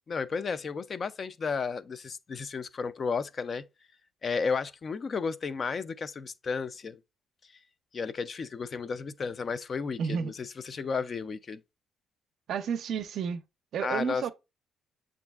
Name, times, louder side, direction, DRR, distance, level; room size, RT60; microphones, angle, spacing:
voice 1, 0.1-3.7 4.2-7.0 7.9-11.6 13.8-14.3, left 5 dB, 45° left, 0.3 m, -33 dB
voice 2, 10.0-10.3 12.5-13.4 13.7-14.3, right 7 dB, 70° right, 0.4 m, -31 dB
7.0 x 2.5 x 2.3 m
cardioid pair, 90°, 0 cm